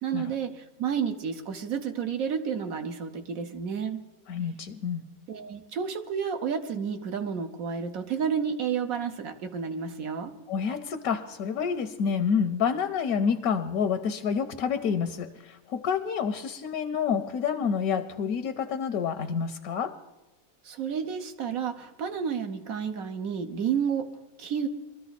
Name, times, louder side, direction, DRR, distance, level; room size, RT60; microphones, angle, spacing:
voice 1, 0.0-4.0 5.3-10.4 20.6-24.7, right 7 dB, 70° right, 7 dB, 1.4 m, -31 dB
voice 2, 4.3-5.0 10.5-20.0, left 6 dB, 80° left, 9 dB, 1.2 m, -28 dB
21.5 x 13.5 x 4.1 m, 1.0 s
omnidirectional pair, 1.5 m